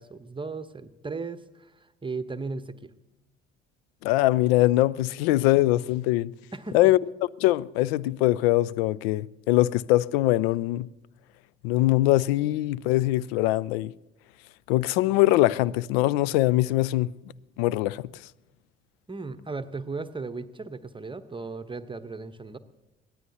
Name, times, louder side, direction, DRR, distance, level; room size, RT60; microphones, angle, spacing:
voice 1, 0.0-2.9 6.5-6.9 19.1-22.6, right 3 dB, 15° right, 0.9 m, -36 dB
voice 2, 4.0-6.3 6.7-7.0 7.4-10.9 11.6-13.9 14.7-17.1 17.6-18.0, left 17 dB, 65° left, 0.5 m, -22 dB
23.0 x 17.5 x 2.8 m
figure-of-eight pair, 50°, 33 cm